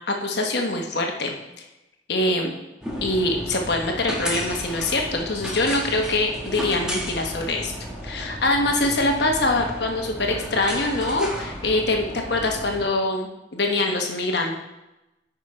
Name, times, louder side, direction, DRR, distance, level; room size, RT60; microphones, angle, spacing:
voice 1, 0.1-1.3 2.1-2.5 3.0-7.7 8.0-14.5, left 2 dB, 60° left, 2 dB, 1.1 m, -24 dB
sound 1, 2.8-12.9, equal, 5° right, 1.3 m, -33 dB
8.8 x 5.1 x 4.4 m, 0.96 s
head